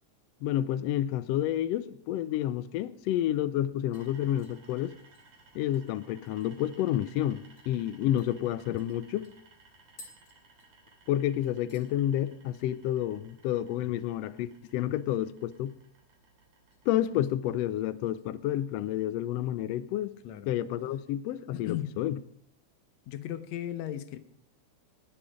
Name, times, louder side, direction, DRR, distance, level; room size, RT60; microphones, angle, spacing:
voice 1, 0.4-4.9 5.5-9.3 11.1-15.7 16.9-20.1 20.5-22.2, left 12 dB, 90° left, 1.4 m, -30 dB
sound 1, 3.9-6.8 7.1-7.2 7.6-7.7 8.2-11.2 11.4-11.9 12.3-12.7 12.9-13.0 15.1-15.8 16.1-16.8 17.2-17.5 18.1-19.0 19.3-19.4, left 1 dB, 50° left, 3.0 m, -59 dB
sound 2, 3.9-17.2, right 3 dB, 65° right, 4.6 m, -60 dB
voice 2, 21.5-22.0 23.1-24.2, left 12 dB, 70° left, 1.9 m, -36 dB
19.5 x 7.7 x 5.0 m
omnidirectional pair, 3.5 m